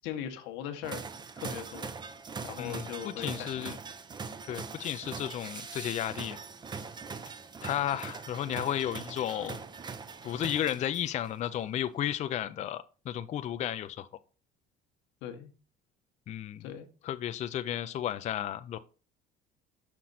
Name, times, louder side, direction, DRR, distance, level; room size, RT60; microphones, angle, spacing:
voice 1, 0.0-1.0 1.3-1.9 2.4-3.8 15.2-15.5 16.6-16.9, left 9 dB, 85° left, 1.1 m, -39 dB
sound 1, 0.8-11.3, right 5 dB, 25° right, 0.6 m, -42 dB
voice 2, 2.6-3.8 4.5-6.4 7.6-9.6 10.2-14.1 16.3-16.7 17.0-18.8, left 11 dB, 40° left, 0.4 m, -33 dB
6.2 x 5.9 x 4.0 m
cardioid pair, 115°, 19 cm